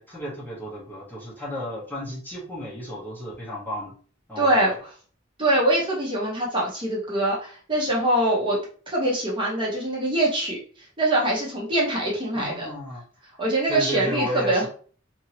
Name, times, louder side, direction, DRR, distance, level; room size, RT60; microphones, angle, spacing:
voice 1, 0.0-3.9 4.3-4.6 12.3-13.0 13.3-13.4 13.7-14.7, left 1 dB, 10° left, -6 dB, 0.9 m, -33 dB
voice 2, 4.4-4.7 5.4-8.6 8.9-10.6 11.0-12.7 13.4-14.7, right 1 dB, 25° right, -4 dB, 1.0 m, -23 dB
2.9 x 2.7 x 2.8 m, 0.43 s
head